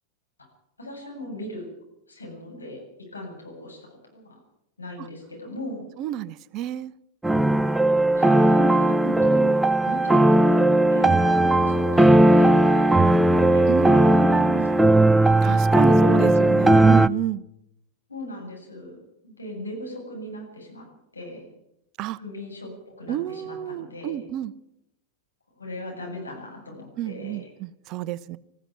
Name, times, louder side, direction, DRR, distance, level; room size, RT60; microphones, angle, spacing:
voice 1, 0.8-1.7 2.1-4.4 4.8-5.9 8.1-14.9 16.6-16.8 18.1-19.0 19.2-20.9 21.1-21.5 22.2-24.2 25.5-27.5, left 1 dB, 90° left, 1 dB, 7.8 m, -38 dB
voice 2, 6.0-6.9 8.6-8.7 9.0-9.1 13.7-14.7 15.4-17.4 22.0-22.2 23.1-24.5 27.0-28.4, right 12 dB, 45° right, 18 dB, 0.9 m, -30 dB
sound 1, 7.2-17.1, right 1 dB, 5° right, 0.7 m, -17 dB
20.5 x 14.5 x 9.0 m, 0.81 s
figure-of-eight pair, 95°, 0 cm